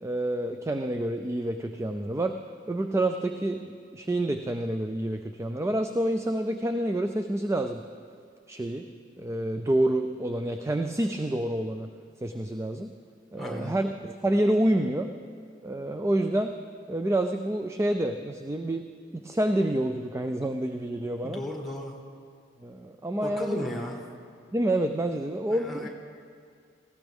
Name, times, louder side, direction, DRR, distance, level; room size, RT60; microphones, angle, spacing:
voice 1, 0.0-2.4 2.7-7.8 8.5-8.9 9.2-11.9 12.2-12.9 13.3-15.1 15.6-16.5 16.9-18.9 19.1-21.4 22.6-23.7 24.5-25.9, right 1 dB, 15° right, 7 dB, 0.4 m, -28 dB
voice 2, 13.4-13.8 21.2-21.9 23.2-24.0 25.5-25.9, left 1 dB, ahead, -1 dB, 1.8 m, -35 dB
18.5 x 15.5 x 3.5 m, 2.2 s
head